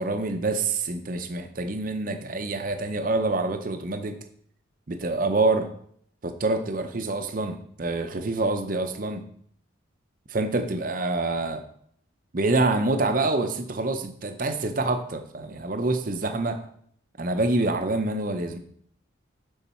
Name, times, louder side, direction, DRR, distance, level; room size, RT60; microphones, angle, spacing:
voice 1, 0.0-4.2 4.9-5.7 6.2-9.2 10.3-11.6 12.3-16.6 17.2-18.6, right 2 dB, 45° right, 6 dB, 0.6 m, -26 dB
6.9 x 6.4 x 4.3 m, 0.63 s
head